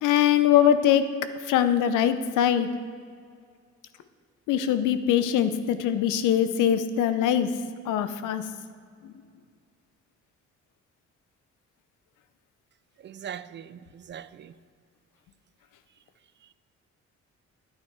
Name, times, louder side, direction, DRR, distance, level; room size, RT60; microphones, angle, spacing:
voice 1, 0.0-1.0 1.5-2.7 4.5-7.5 7.9-8.4 9.0-9.1, left 10 dB, 85° left, 0.7 m, -22 dB
voice 2, 13.0-14.5, right 9 dB, 40° right, 0.4 m, -41 dB
11.5 x 7.4 x 4.6 m
cardioid pair, 90°, 30 cm